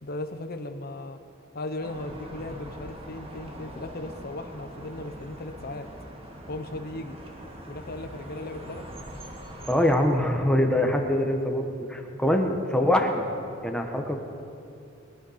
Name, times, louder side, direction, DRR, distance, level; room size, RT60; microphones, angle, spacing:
voice 1, 0.0-1.2 1.5-5.9 6.5-7.2 7.7-8.9, left 2 dB, 55° left, 7 dB, 0.9 m, -37 dB
sound 1, 1.8-10.0, equal, 30° right, 1.9 m, -42 dB
voice 2, 9.7-11.6 11.9-13.3 13.6-14.2, left 1 dB, 5° left, 3 dB, 1.3 m, -23 dB
22.0 x 10.0 x 5.7 m, 2.7 s
head